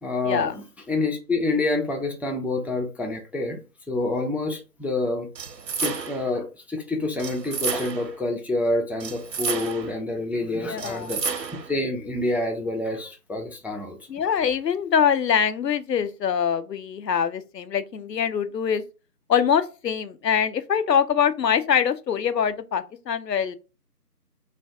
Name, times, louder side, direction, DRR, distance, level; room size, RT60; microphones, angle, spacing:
voice 1, 0.0-3.6 3.9-5.3 5.8-11.2 11.7-14.0, left 2 dB, 5° right, 0.4 m, -27 dB
sound 1, 5.3-6.3 7.2-8.2 9.0-10.0 10.8-11.7, right 5 dB, 90° right, 0.6 m, -31 dB
voice 2, 10.6-11.1 14.1-18.8 19.3-23.6, left 7 dB, 85° left, 0.6 m, -24 dB
2.5 x 2.2 x 3.4 m
figure-of-eight pair, 170°, 48 cm